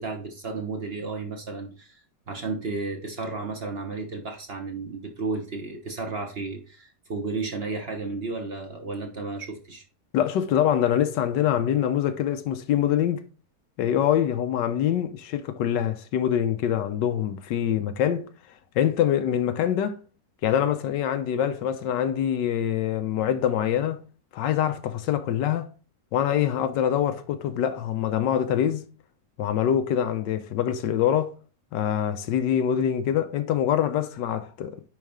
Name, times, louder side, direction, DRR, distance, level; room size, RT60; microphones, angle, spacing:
voice 1, 0.0-2.0 2.3-9.8, right 3 dB, 40° right, 1.2 m, -33 dB
voice 2, 10.1-13.2 13.8-18.3 18.7-20.0 20.4-24.0 24.3-25.7 26.1-28.9 29.4-31.3 31.7-34.8, left 10 dB, 90° left, 1.4 m, -24 dB
9.6 x 4.3 x 3.6 m
omnidirectional pair, 1.9 m